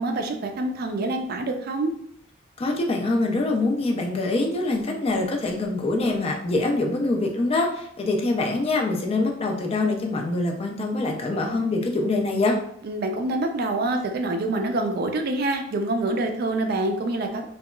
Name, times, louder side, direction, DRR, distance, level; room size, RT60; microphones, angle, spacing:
voice 1, 0.0-1.9 12.8-17.5, right 2 dB, 55° right, 4 dB, 0.3 m, -26 dB
voice 2, 2.6-12.6, left 2 dB, 30° left, 2 dB, 0.3 m, -24 dB
2.8 x 2.2 x 2.2 m, 0.68 s
head